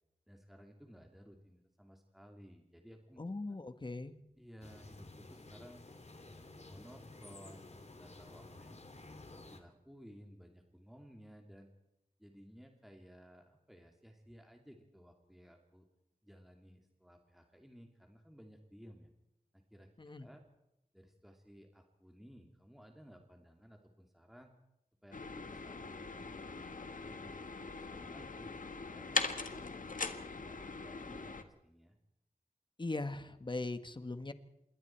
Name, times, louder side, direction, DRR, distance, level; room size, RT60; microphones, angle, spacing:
voice 1, 0.3-3.2 4.4-5.8 6.6-8.9 9.3-11.7 12.2-15.9 16.2-19.1 19.5-19.9 20.2-20.4 20.9-24.5 25.0-28.5 28.9-32.0, equal, ahead, 3 dB, 2.6 m, -57 dB
voice 2, 3.2-4.1 20.0-20.3 32.8-34.3, left 2 dB, 35° left, 11 dB, 1.4 m, -40 dB
sound 1, 4.6-9.6, left 2 dB, 50° left, 2.7 m, -53 dB
sound 2, 25.1-31.4, left 4 dB, 65° left, 1.6 m, -41 dB
27.0 x 22.0 x 4.5 m, 0.83 s
wide cardioid pair, 80°, 15 cm